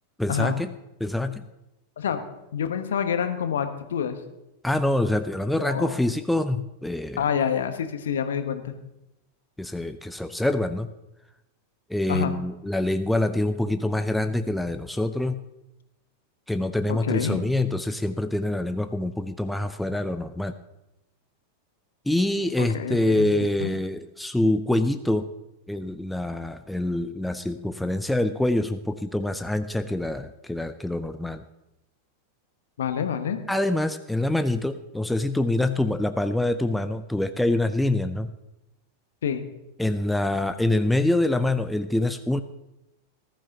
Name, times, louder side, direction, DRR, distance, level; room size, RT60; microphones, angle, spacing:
voice 1, 0.2-0.7 1.0-1.4 4.6-7.2 9.6-10.9 11.9-15.4 16.5-20.5 22.1-25.3 25.7-31.4 33.5-38.3 39.8-42.4, left 1 dB, 5° left, 9 dB, 0.5 m, -25 dB
voice 2, 2.5-4.2 5.5-6.0 7.2-8.7 12.1-12.3 16.9-17.4 22.6-23.7 32.8-33.4 39.2-39.4, left 8 dB, 65° left, 9 dB, 1.1 m, -27 dB
19.5 x 13.0 x 2.9 m, 0.93 s
figure-of-eight pair, 90°, 0 cm